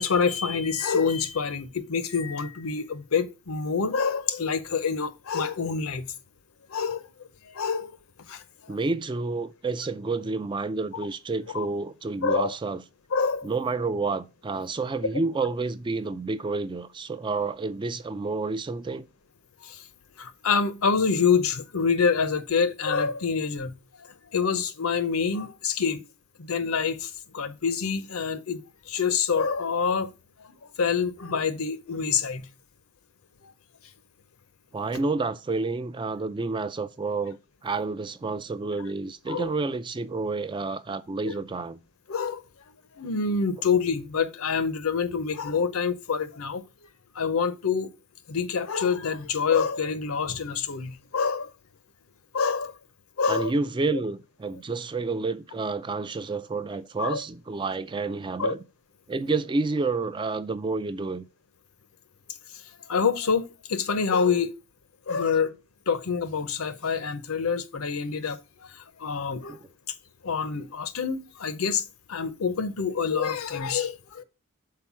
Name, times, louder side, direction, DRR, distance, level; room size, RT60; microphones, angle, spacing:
voice 1, 0.0-6.0 6.7-7.1 7.5-8.0 8.3-8.8 11.5-11.7 12.2-12.5 13.1-13.5 19.6-19.8 20.2-23.7 24.0-26.0 26.4-28.6 28.9-30.1 30.8-32.5 33.4-33.5 39.3-39.5 41.2-41.3 42.1-42.4 43.0-46.6 47.1-47.9 48.3-51.5 52.3-52.7 53.2-53.5 57.0-57.2 58.4-58.6 62.9-64.5 65.1-65.5 65.9-69.6 70.2-74.2, left 5 dB, 75° left, 0.7 m, -26 dB
voice 2, 8.7-12.8 13.4-19.1 34.7-41.8 53.3-58.6 59.1-61.2 69.5-69.6, right 3 dB, 20° right, 0.3 m, -29 dB
5.7 x 4.3 x 5.9 m
head